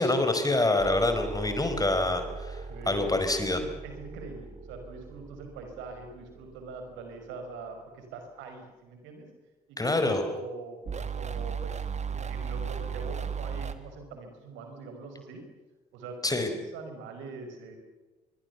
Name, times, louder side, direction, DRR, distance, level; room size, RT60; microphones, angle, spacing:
voice 1, 0.0-2.6 2.9-3.6 9.8-10.2 16.2-16.5, left 2 dB, 15° left, 7 dB, 4.7 m, -26 dB
sound 1, 0.8-7.2 10.9-13.7, right 6 dB, 35° right, 2.1 m, -37 dB
voice 2, 2.7-3.2 3.6-9.3 9.7-11.7 12.1-15.4 15.9-17.8, right 3 dB, 65° right, 5 dB, 5.3 m, -43 dB
25.0 x 24.0 x 7.0 m, 1.2 s
figure-of-eight pair, 50°, 21 cm